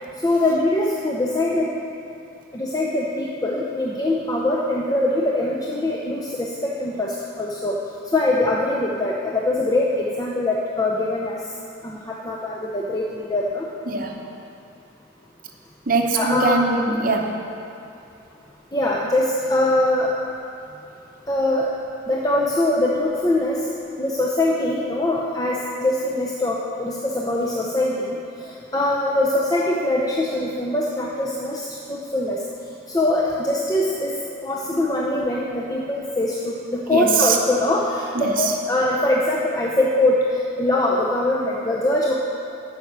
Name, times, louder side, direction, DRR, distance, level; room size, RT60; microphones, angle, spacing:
voice 1, 0.2-1.7 2.5-7.8 8.1-11.4 11.8-13.7 16.1-16.6 18.7-20.1 21.3-21.7 22.1-23.6 24.0-32.4 32.9-34.1 34.4-42.1, left 1 dB, 20° left, -3 dB, 0.6 m, -22 dB
voice 2, 13.9-14.2 15.9-17.4 36.9-37.4 38.1-38.5, right 4 dB, 45° right, 2 dB, 0.7 m, -21 dB
9.0 x 5.9 x 6.5 m, 2.6 s
head